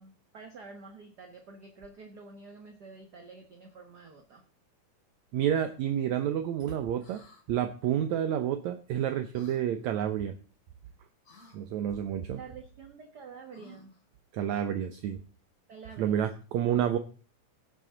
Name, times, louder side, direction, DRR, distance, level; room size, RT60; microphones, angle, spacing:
voice 1, 0.0-4.4 12.3-13.9 15.7-16.2, right 4 dB, 40° right, 4 dB, 1.7 m, -48 dB
voice 2, 5.3-7.2 7.5-10.3 11.5-12.4 14.3-15.2 16.0-17.0, right 10 dB, 70° right, 9 dB, 2.0 m, -29 dB
sound 1, 7.0-7.4 9.3-9.6 11.2-11.6 13.5-14.0, left 1 dB, 30° left, 3.8 m, -55 dB
17.5 x 9.4 x 3.9 m, 0.39 s
omnidirectional pair, 3.6 m